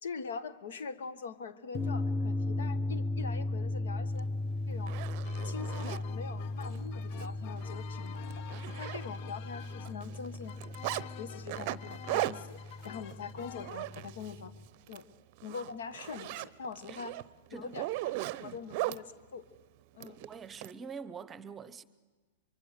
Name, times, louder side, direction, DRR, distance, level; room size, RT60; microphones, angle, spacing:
voice 1, 0.0-4.3 4.7-5.0 5.4-8.4 8.8-10.5 10.9-12.6 12.8-14.5 14.9-15.0 15.4-17.2 17.5-18.1 18.4-19.4 19.9-20.2, left 5 dB, 75° left, 1.4 m, -43 dB
sound 1, 1.7-14.7, left 2 dB, 10° left, 1.0 m, -37 dB
Zipper (clothing), 4.2-4.3 4.7-6.0 6.6-6.8 7.1-7.3 7.6-7.7 8.1-9.4 9.6-11.0 11.5-14.4 14.8-15.0 15.4-19.0 20.0-20.7, right 18 dB, 50° right, 0.6 m, -38 dB
sound 2, 5.2-13.7, left 11 dB, 45° left, 0.7 m, -49 dB
voice 2, 20.0-21.8, right 5 dB, 20° right, 0.8 m, -45 dB
24.0 x 24.0 x 6.7 m
hypercardioid pair, 125°, 0 cm